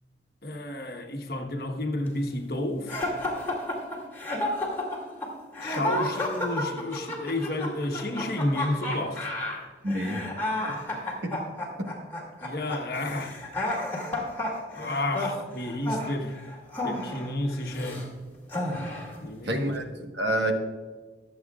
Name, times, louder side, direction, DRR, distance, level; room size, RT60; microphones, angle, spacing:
voice 1, 0.4-3.0 5.6-9.3 12.4-13.4 14.7-16.3 16.8-18.0 19.2-19.6, left 1 dB, 55° left, 1.2 m, -31 dB
sound 1, 2.9-18.1 18.5-19.2, left 1 dB, 10° left, 2.4 m, -32 dB
voice 2, 9.8-10.2 11.2-11.4 11.8-11.9 19.4-20.5, right 1 dB, 80° right, 1.4 m, -28 dB
22.0 x 7.8 x 2.4 m
head